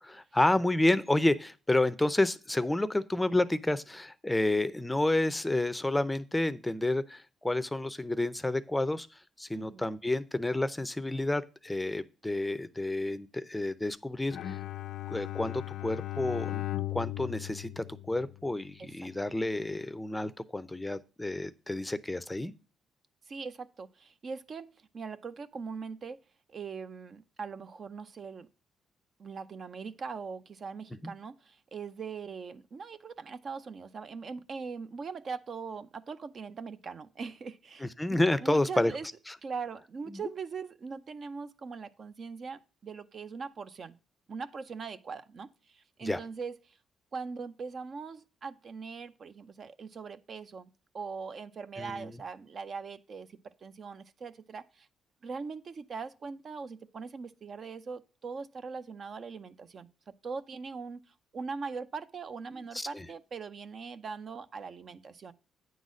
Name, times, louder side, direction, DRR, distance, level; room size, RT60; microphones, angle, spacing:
voice 1, 0.0-9.1 9.4-14.6 15.1-22.5 31.0-31.1 37.8-38.9 39.3-39.4 40.1-40.2 46.0-46.2 51.8-52.1 62.7-63.1, left 2 dB, 10° left, 0.5 m, -30 dB
voice 2, 9.6-9.9 18.8-19.3 23.3-26.2 26.5-28.5 29.2-39.1 39.4-43.9 44.3-46.8 47.1-50.7 50.9-54.9 55.2-59.9 60.2-61.0 61.3-65.3, right 5 dB, 50° right, 0.6 m, -41 dB
Bowed string instrument, 14.3-18.7, left 15 dB, 75° left, 0.4 m, -37 dB
9.2 x 4.0 x 6.2 m
cardioid pair, 90°, 0 cm